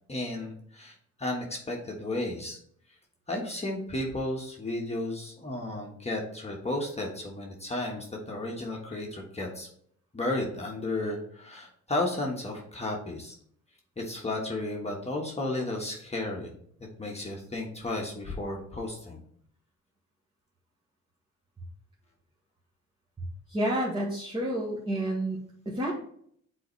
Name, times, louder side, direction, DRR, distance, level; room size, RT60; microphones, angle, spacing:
voice 1, 0.1-2.6 3.3-9.7 10.1-13.3 14.0-16.5 17.0-19.2, left 2 dB, 20° left, -1 dB, 1.4 m, -33 dB
voice 2, 23.5-25.4 25.7-25.9, right 1 dB, 20° right, -5 dB, 1.8 m, -29 dB
7.7 x 4.3 x 3.2 m, 0.65 s
cardioid pair, 90°, 30 cm